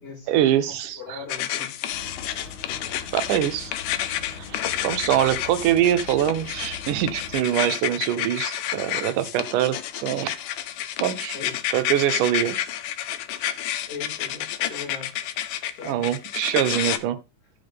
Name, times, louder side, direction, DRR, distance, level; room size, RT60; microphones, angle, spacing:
voice 1, 0.3-1.2 3.1-3.7 4.3-10.3 11.0-11.3 11.7-12.6 15.8-17.2, right 11 dB, 85° right, 2.5 m, -24 dB
voice 2, 1.0-1.7 11.3-11.6 13.9-15.1 15.8-16.0, left 4 dB, 65° left, 6.6 m, -39 dB
sound 1, 1.3-17.0, left 11 dB, 80° left, 2.3 m, -30 dB
sound 2, 1.9-7.4, left 4 dB, 40° left, 4.9 m, -42 dB
14.5 x 5.4 x 3.5 m
omnidirectional pair, 3.6 m